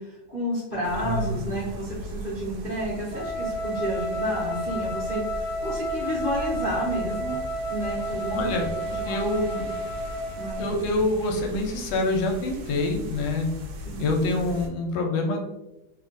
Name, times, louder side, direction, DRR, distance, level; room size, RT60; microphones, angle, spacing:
voice 1, 0.0-7.4 7.7-8.6 8.9-9.6 10.4-10.7 13.8-14.0, equal, 55° left, -9 dB, 0.5 m, -31 dB
sound 1, 0.8-14.7, equal, 80° right, 1.4 m, -39 dB
voice 2, 0.9-1.3 8.3-8.7 9.1-9.6 10.6-13.5 14.0-15.4, left 2 dB, 75° left, 2 dB, 1.2 m, -26 dB
Wind instrument woodwind instrument, 3.1-10.7, right 1 dB, 5° left, 1.1 m, -31 dB
3.3 x 2.4 x 2.5 m, 0.94 s
omnidirectional pair, 2.2 m